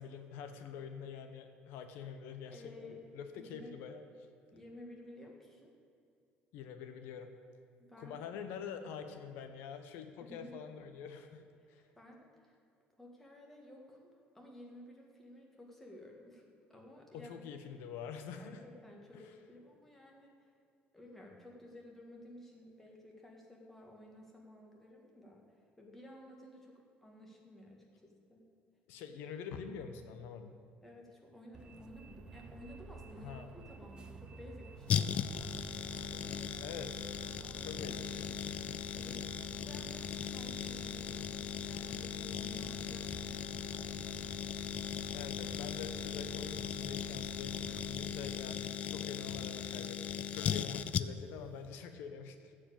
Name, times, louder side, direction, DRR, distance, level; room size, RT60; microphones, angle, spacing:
voice 1, 0.0-2.7 3.1-4.0 6.5-7.3 8.0-11.8 17.1-18.6 19.1-19.2 28.9-30.5 33.2-33.5 36.6-37.2 37.6-38.3 45.1-52.5, left 7 dB, 80° left, 7 dB, 0.9 m, -46 dB
voice 2, 2.5-3.0 3.3-3.7 4.5-5.7 7.8-8.3 10.2-10.5 11.6-12.6 13.0-16.4 16.7-17.5 18.4-20.5 20.9-28.5 30.8-36.7 37.2-38.3 38.6-44.5, left 1 dB, 5° left, -1 dB, 1.8 m, -54 dB
Bus, 31.5-48.4, right 3 dB, 20° right, 0.7 m, -50 dB
sound 1, 34.9-51.4 51.6-51.7, left 8 dB, 35° left, 0.4 m, -38 dB
14.5 x 5.0 x 8.8 m, 2.5 s
cardioid pair, 170°, 4 cm